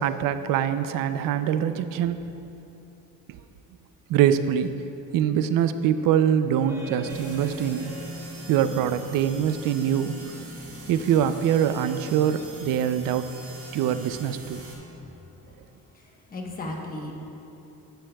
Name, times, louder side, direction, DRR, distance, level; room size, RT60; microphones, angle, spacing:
voice 1, 0.0-2.3 3.3-3.4 4.1-4.7 5.1-7.9 8.5-10.1 10.9-13.3 13.7-14.6, right 9 dB, 70° right, 11 dB, 0.5 m, -24 dB
sound 1, 6.7-15.6, equal, 5° right, 0.7 m, -42 dB
sound 2, 7.1-14.7, right 3 dB, 40° right, 1.8 m, -45 dB
voice 2, 14.6-15.2 15.4-15.6 15.9-17.1, left 2 dB, 25° left, 0 dB, 1.1 m, -38 dB
13.5 x 10.0 x 2.3 m, 3.0 s
cardioid pair, 165°, 35 cm